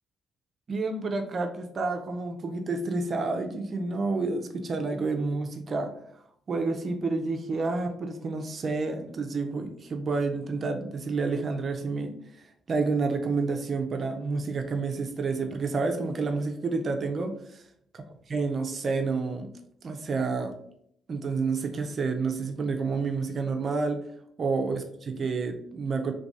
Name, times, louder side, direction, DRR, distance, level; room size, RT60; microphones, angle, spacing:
voice 1, 0.7-5.9 6.5-12.1 12.7-17.6 17.9-18.0 18.3-19.5 19.8-20.5 21.1-24.0 24.4-26.1, right 3 dB, 45° right, 5 dB, 0.4 m, -29 dB
3.3 x 3.1 x 2.6 m, 0.69 s
cardioid pair, 90°, 0 cm